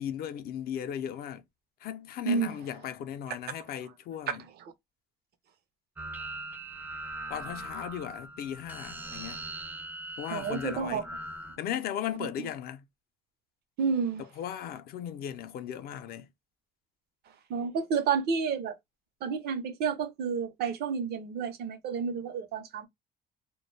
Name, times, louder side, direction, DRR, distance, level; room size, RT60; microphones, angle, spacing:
voice 1, 0.0-1.4 1.8-4.4 7.3-9.4 10.2-11.0 11.6-12.8 14.2-16.3, left 10 dB, 65° left, 0.5 m, -37 dB
voice 2, 2.3-2.6 10.3-11.0 13.8-14.2 17.5-18.8 19.2-22.9, right 6 dB, 70° right, 0.7 m, -30 dB
sound 1, 6.0-11.6, right 2 dB, 10° right, 0.4 m, -41 dB
2.2 x 2.1 x 3.0 m
cardioid pair, 110°, 17 cm